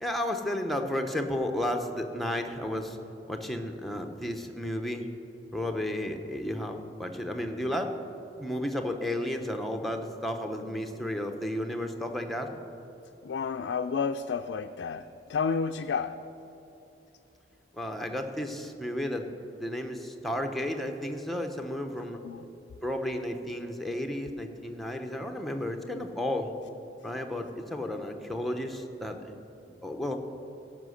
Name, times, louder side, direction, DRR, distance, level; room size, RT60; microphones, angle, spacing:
voice 1, 0.0-3.0 3.3-5.1 5.5-7.9 8.4-12.6 17.7-19.3 19.6-22.2 22.8-26.5 27.0-29.3 29.8-30.2, left 1 dB, ahead, 4 dB, 0.7 m, -33 dB
voice 2, 13.2-16.2 22.2-22.5, left 5 dB, 75° left, 6 dB, 0.3 m, -31 dB
16.5 x 5.7 x 6.4 m, 2.9 s
head